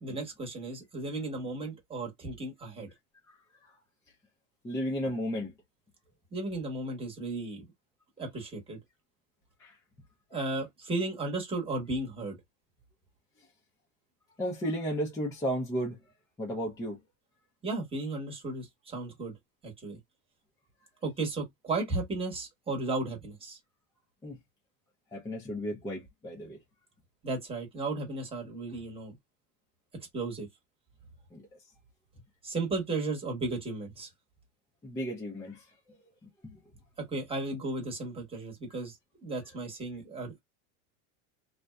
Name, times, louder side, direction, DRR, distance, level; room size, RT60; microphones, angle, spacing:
voice 1, 0.0-2.9 6.3-7.7 8.2-8.8 10.3-12.4 17.6-19.3 19.6-20.0 21.0-23.6 27.2-29.2 30.1-30.5 32.4-34.1 37.0-39.0 39.2-40.4, right 2 dB, 15° right, 1.0 m, -34 dB
voice 2, 4.6-5.5 9.6-9.8 14.4-16.0 16.4-17.0 24.2-24.4 25.1-26.6 31.3-31.4 34.8-36.0 36.4-36.6, equal, 10° left, 0.4 m, -34 dB
2.6 x 2.1 x 2.2 m
supercardioid pair, 135°, 42 cm